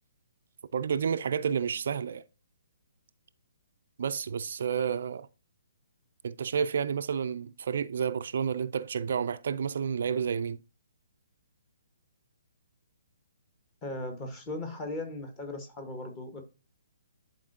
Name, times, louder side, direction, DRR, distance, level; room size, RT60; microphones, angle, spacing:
voice 1, 0.7-2.2 4.0-5.3 6.2-10.6, right 7 dB, 55° right, 0.3 m, -30 dB
voice 2, 13.8-16.4, left 2 dB, 20° left, 1.5 m, -37 dB
10.5 x 4.3 x 2.6 m
figure-of-eight pair, 130°, 0 cm